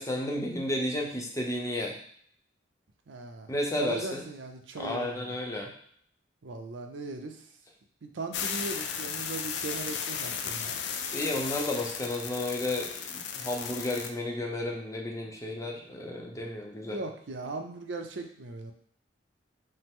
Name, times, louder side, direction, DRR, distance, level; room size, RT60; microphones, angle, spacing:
voice 1, 0.0-1.9 3.5-4.2 4.8-5.7 11.1-17.0, left 1 dB, 20° left, 0 dB, 0.7 m, -32 dB
voice 2, 3.1-5.3 6.4-7.4 8.0-10.8 16.8-18.7, right 3 dB, 80° right, 4 dB, 0.6 m, -39 dB
sound 1, 8.3-14.1, left 7 dB, 65° left, 0.4 m, -35 dB
5.5 x 2.0 x 3.6 m, 0.62 s
head